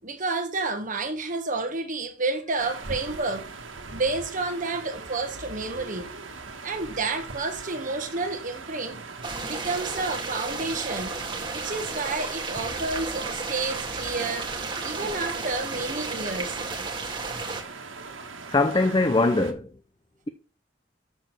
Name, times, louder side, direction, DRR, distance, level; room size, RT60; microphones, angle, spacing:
voice 1, 0.0-3.5 3.9-6.1 6.6-9.0 9.5-11.1 11.5-14.5 14.8-16.6, right 3 dB, 40° right, 1.3 m, -30 dB
sound 1, 2.6-19.5, right 4 dB, 75° right, 1.6 m, -41 dB
sound 2, 9.2-17.6, right 3 dB, 25° right, 1.7 m, -33 dB
voice 2, 18.5-19.7, left 2 dB, 25° left, 0.6 m, -21 dB
6.9 x 6.7 x 6.0 m
head